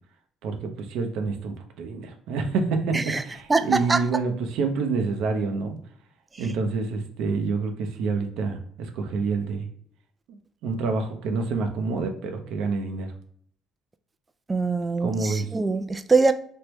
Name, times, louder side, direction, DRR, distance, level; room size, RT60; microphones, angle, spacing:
voice 1, 0.4-5.8 6.4-9.7 10.3-10.4 10.6-13.1 15.0-15.5, right 4 dB, 75° right, 0.6 m, -27 dB
voice 2, 3.5-4.0 14.5-16.3, right 3 dB, 25° right, 0.3 m, -22 dB
3.3 x 2.1 x 3.0 m
supercardioid pair, 80°, 0 cm